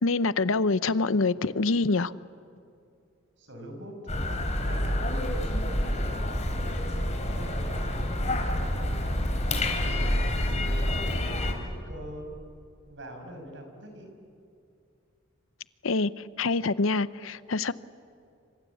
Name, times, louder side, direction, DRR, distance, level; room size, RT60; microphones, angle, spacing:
voice 1, 0.0-2.1 15.8-16.1 16.4-17.7, left 3 dB, 80° left, 0.7 m, -25 dB
voice 2, 3.4-9.1 9.5-12.3 12.9-14.1, equal, 65° right, 5.9 m, -44 dB
sound 1, 4.1-11.5, left 1 dB, 35° left, 3.8 m, -28 dB
27.0 x 26.0 x 8.4 m
head